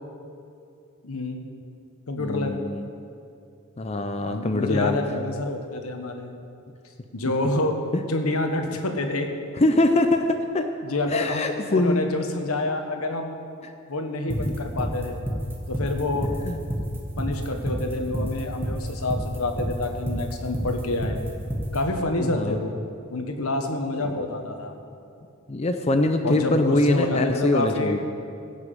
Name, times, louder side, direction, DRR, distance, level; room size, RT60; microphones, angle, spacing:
voice 1, 1.0-1.5 2.1-2.6 4.3-6.4 7.1-7.8 8.1-9.3 10.8-13.4 13.9-15.2 15.7-16.3 17.1-21.2 21.7-22.8 23.1-24.7 26.2-28.0, left 2 dB, 90° left, 4 dB, 1.3 m, -28 dB
voice 2, 2.2-2.9 3.8-5.0 9.6-10.7 11.1-12.0 14.4-14.5 16.4-16.6 18.1-18.3 22.2-22.6 24.0-24.1 25.5-28.1, left 2 dB, 30° left, 6 dB, 0.6 m, -23 dB
sound 1, 14.3-21.8, equal, 10° right, 1.4 m, -28 dB
16.5 x 6.1 x 7.6 m, 2.5 s
head